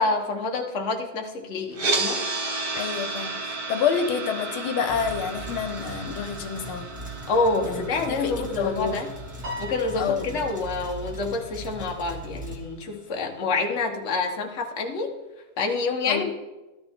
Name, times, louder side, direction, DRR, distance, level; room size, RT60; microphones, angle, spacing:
voice 1, 0.0-2.2 7.3-9.1 9.6-15.1 15.6-16.3, left 3 dB, 40° left, 2 dB, 1.4 m, -27 dB
sound 1, 1.7-11.8, right 3 dB, 40° right, 0.7 m, -33 dB
voice 2, 2.7-6.9 7.6-9.0 10.0-10.4 16.1-16.3, left 7 dB, 85° left, 8 dB, 1.7 m, -28 dB
sound 2, 4.9-12.6, right 1 dB, 5° right, 1.3 m, -39 dB
Piano, 9.4-11.9, left 1 dB, 55° right, 3.8 m, -40 dB
13.5 x 12.5 x 3.6 m, 1.1 s
omnidirectional pair, 2.3 m